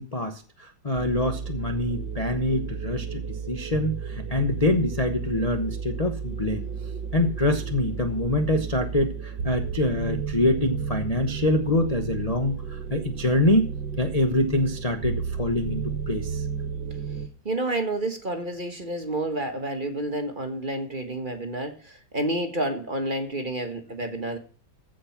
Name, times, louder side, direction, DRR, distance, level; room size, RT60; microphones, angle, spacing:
voice 1, 0.0-6.6 7.1-13.6 14.0-16.4, left 1 dB, 25° left, 4 dB, 0.8 m, -25 dB
sound 1, 0.9-17.3, right 6 dB, 70° right, 1.5 m, -33 dB
voice 2, 17.4-24.4, right 1 dB, 30° right, 5 dB, 1.5 m, -29 dB
15.5 x 5.4 x 5.8 m, 0.42 s
omnidirectional pair, 2.0 m